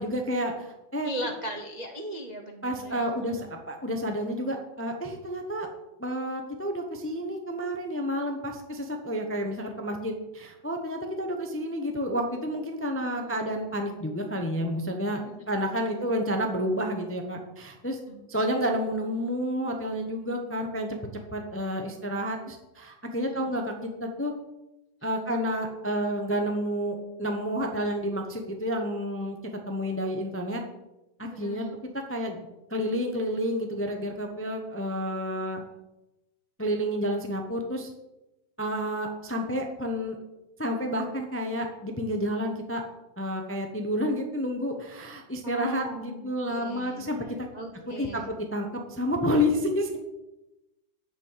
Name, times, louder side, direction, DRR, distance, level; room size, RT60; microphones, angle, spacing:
voice 1, 0.0-1.1 2.6-5.7 6.0-18.0 18.3-20.9 21.3-24.3 25.0-29.4 29.7-30.6 31.2-31.7 32.1-32.4 32.7-35.6 36.6-37.9 38.6-40.2 40.6-42.8 43.2-47.5 48.0-50.0, equal, 20° left, 3 dB, 0.3 m, -30 dB
voice 2, 1.0-3.5 13.0-13.6 15.2-15.4 15.9-16.0 18.1-18.2 23.3-23.6 25.0-25.2 31.3-31.8 45.4-47.0 47.5-48.2, right 1 dB, 65° right, 3 dB, 0.4 m, -38 dB
9.4 x 5.3 x 7.3 m, 0.98 s
omnidirectional pair, 2.1 m